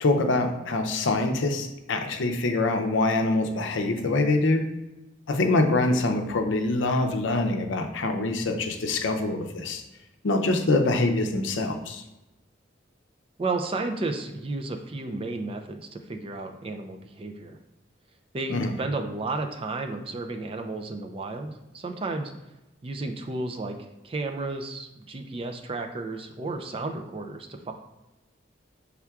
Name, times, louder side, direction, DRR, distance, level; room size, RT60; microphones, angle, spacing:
voice 1, 0.0-4.7 5.3-9.8 10.2-12.0 18.5-18.7, left 2 dB, 80° left, 5 dB, 0.5 m, -24 dB
voice 2, 13.4-17.6 18.3-22.3 22.8-23.8 24.0-27.7, right 3 dB, 30° right, 5 dB, 0.4 m, -32 dB
5.7 x 3.5 x 2.3 m, 0.99 s
head